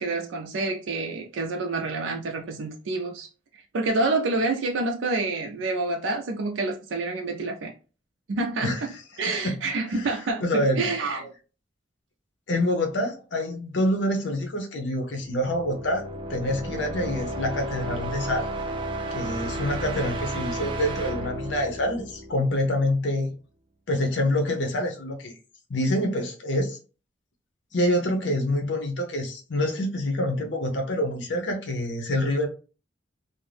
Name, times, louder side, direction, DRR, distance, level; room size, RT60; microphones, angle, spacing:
voice 1, 0.0-3.3 3.7-7.7 8.3-8.8 9.2-11.3, right 3 dB, 85° right, 0.4 m, -28 dB
voice 2, 10.4-10.9 12.5-18.5 19.1-23.3 23.9-25.3 25.7-26.8 27.7-32.5, left 1 dB, 70° left, 0.6 m, -26 dB
sound 1, 15.2-22.9, right 1 dB, 25° right, 0.4 m, -33 dB
2.5 x 2.0 x 3.2 m
head